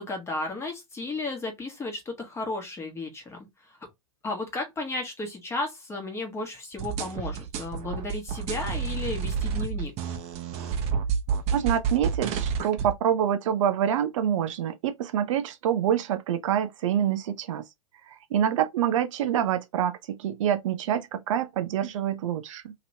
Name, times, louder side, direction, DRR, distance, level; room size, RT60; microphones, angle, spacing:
voice 1, 0.0-3.4 3.7-3.8 4.2-9.9, left 2 dB, 15° left, 1.1 m, -34 dB
sound 1, 6.8-12.9, right 6 dB, 40° right, 0.8 m, -29 dB
voice 2, 11.5-17.6 18.1-22.7, right 9 dB, 65° right, 0.5 m, -26 dB
2.9 x 2.9 x 2.7 m
hypercardioid pair, 115°, 18 cm